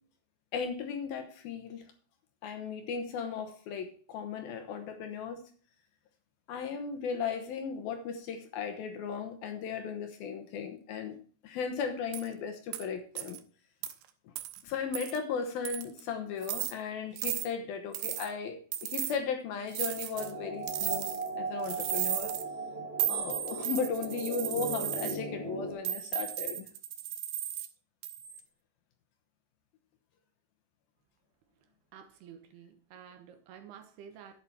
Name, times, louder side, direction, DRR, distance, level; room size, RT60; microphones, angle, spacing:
voice 1, 0.5-1.8 2.4-5.5 6.5-11.2 11.4-13.4 14.6-21.1 21.4-22.3 23.1-26.7, left 6 dB, 70° left, 2.7 m, -36 dB
sound 1, 12.1-12.3 12.7-12.8 13.2-13.4 13.8-13.9 14.4-14.6 14.9-15.2 15.7-16.0 16.4-16.7 17.2-17.5 18.0-18.3 18.7-19.2 19.7-20.3 20.7-21.3 21.6-22.4 23.0-25.2 25.9-27.7 28.0-28.4, right 12 dB, 90° right, 3.1 m, -35 dB
sound 2, 20.1-25.7, right 2 dB, 15° right, 2.5 m, -38 dB
voice 2, 31.9-34.4, right 8 dB, 75° right, 3.0 m, -51 dB
11.0 x 8.6 x 4.4 m
omnidirectional pair, 4.9 m